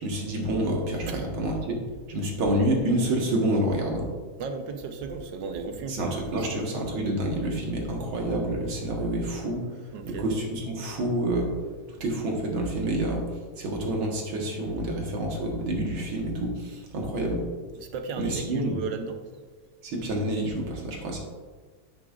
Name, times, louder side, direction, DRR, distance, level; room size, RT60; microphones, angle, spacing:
voice 1, 0.0-1.8 2.1-4.1 5.9-9.6 10.0-11.5 11.9-13.2 13.6-17.4 18.2-18.7 19.8-21.2, right 1 dB, 90° right, 0 dB, 2.4 m, -28 dB
voice 2, 4.4-6.6 9.9-10.3 17.0-17.1 17.8-19.2, right 4 dB, 70° right, 6 dB, 1.4 m, -35 dB
9.8 x 9.0 x 2.5 m, 1.4 s
omnidirectional pair, 2.2 m